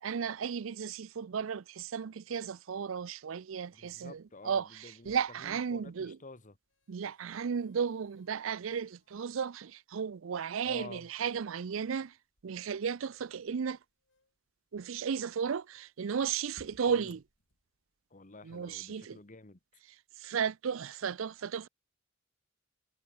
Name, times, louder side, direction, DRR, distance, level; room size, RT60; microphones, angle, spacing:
voice 1, 0.0-6.2 6.9-12.1 12.4-13.8 14.7-17.2 18.4-19.2 20.2-21.7, right 7 dB, 70° right, 0.5 m, -34 dB
voice 2, 3.7-6.6 10.6-11.1 16.9-17.1 18.1-19.6, left 3 dB, 40° left, 1.6 m, -50 dB
sound 1, 4.1-18.1, left 1 dB, 65° left, 5.4 m, -67 dB
head